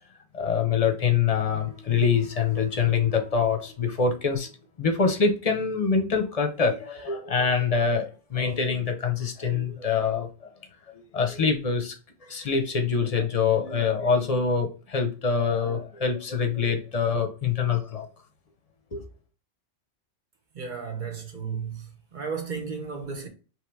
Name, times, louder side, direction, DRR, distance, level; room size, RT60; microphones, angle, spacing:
voice 1, 0.3-4.5 4.8-10.5 10.9-12.0 12.2-18.1 18.9-19.1, left 5 dB, 35° left, 0.8 m, -25 dB
voice 2, 20.5-21.8 22.1-23.3, right 5 dB, 45° right, 1.1 m, -33 dB
3.4 x 3.2 x 4.6 m
omnidirectional pair, 1.1 m